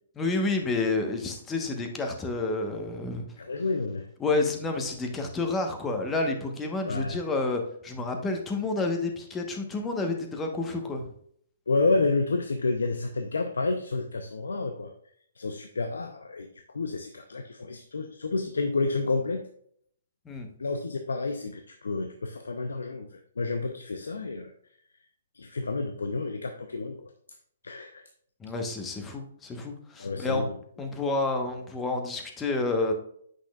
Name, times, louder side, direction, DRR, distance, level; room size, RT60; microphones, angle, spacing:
voice 1, 0.2-3.3 4.2-11.1 20.2-20.5 28.4-30.4 30.8-32.9, left 3 dB, 15° left, 4 dB, 1.1 m, -29 dB
voice 2, 3.4-4.1 6.8-7.2 11.7-14.9 15.4-16.5 16.7-19.4 20.6-24.5 25.3-27.1 27.6-28.0 30.0-30.6, left 3 dB, 75° left, 6 dB, 0.6 m, -30 dB
8.0 x 6.3 x 2.4 m, 0.64 s
figure-of-eight pair, 125°, 0 cm